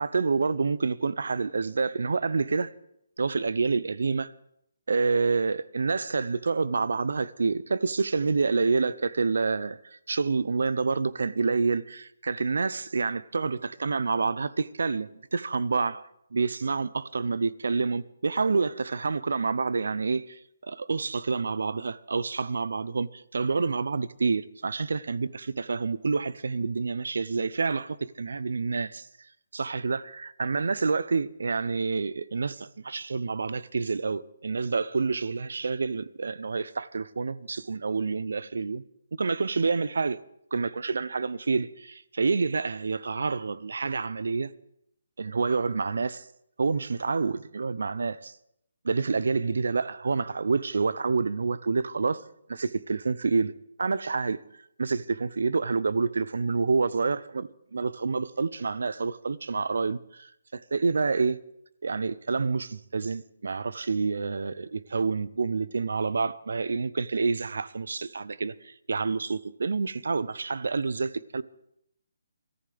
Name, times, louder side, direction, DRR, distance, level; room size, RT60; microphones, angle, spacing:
voice 1, 0.0-2.7 3.2-4.3 4.9-9.8 10.1-29.1 29.5-38.8 39.2-40.2 40.5-44.5 45.2-46.3 46.6-48.3 48.8-52.2 52.5-53.5 53.8-54.4 54.8-61.4 61.8-71.4, right 4 dB, 70° right, 0.6 m, -28 dB
22.0 x 14.0 x 3.5 m
hypercardioid pair, 170°, 0 cm